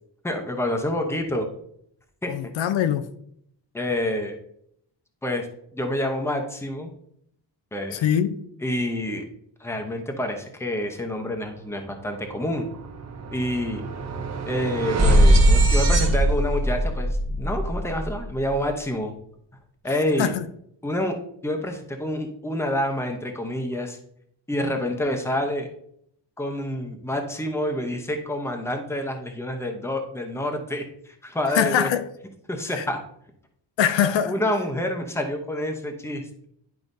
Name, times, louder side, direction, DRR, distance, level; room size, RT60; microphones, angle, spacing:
voice 1, 0.2-1.5 2.2-2.3 3.7-4.4 5.2-5.5 5.7-6.9 7.7-8.1 8.6-9.2 9.6-12.7 13.3-13.8 14.5-19.1 19.8-20.3 20.8-21.2 21.4-24.0 24.5-25.7 26.4-31.9 32.5-33.0 34.3-36.4, left 1 dB, 5° left, 0.8 m, -28 dB
voice 2, 2.3-3.1 7.9-8.4 20.2-20.5 31.5-32.1 32.8-32.9 33.8-34.3, left 9 dB, 85° left, 0.7 m, -22 dB
sound 1, 11.8-12.0 12.3-18.5, right 1 dB, 35° right, 1.0 m, -21 dB
10.5 x 4.8 x 2.7 m
wide cardioid pair, 160°, 44 cm